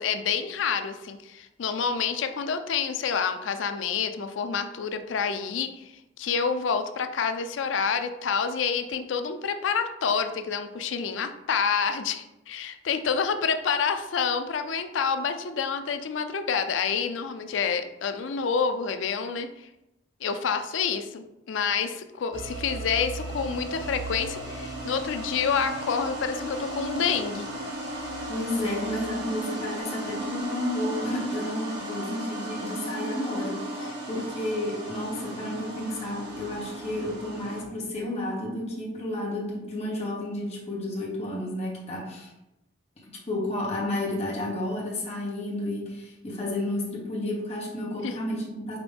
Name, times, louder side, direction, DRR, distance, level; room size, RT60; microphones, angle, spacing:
voice 1, 0.0-5.9 6.2-19.7 20.2-27.5 48.0-48.1, left 6 dB, 90° left, 9 dB, 0.4 m, -28 dB
sound 1, 22.3-37.6, right 1 dB, 60° right, 1.3 m, -35 dB
voice 2, 28.3-42.3 43.3-48.8, left 1 dB, 35° left, -4 dB, 1.1 m, -31 dB
5.2 x 2.9 x 3.5 m, 0.93 s
head